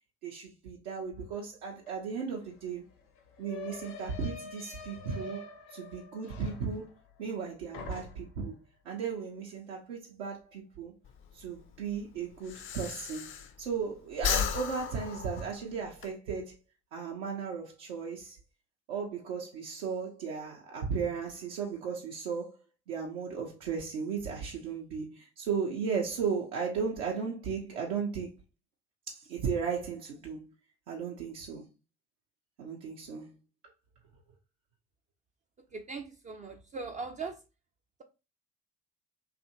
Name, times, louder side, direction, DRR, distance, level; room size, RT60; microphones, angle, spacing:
voice 1, 0.2-2.9 3.4-5.4 5.7-6.9 7.2-8.6 8.8-10.9 11.3-16.6 16.9-18.4 18.9-22.6 22.9-28.3 29.1-30.5 30.9-31.7 32.6-33.3, right 6 dB, 70° right, 0.6 m, -35 dB
sound 1, 1.9-2.0 2.2-7.4 7.7-8.5, left 3 dB, 65° left, 0.8 m, -46 dB
Breathing, 11.0-13.8 14.1-16.1, left 7 dB, 35° left, 0.5 m, -34 dB
voice 2, 35.6-37.4, right 4 dB, 20° right, 0.4 m, -40 dB
2.7 x 2.4 x 2.7 m
figure-of-eight pair, 55°, 35 cm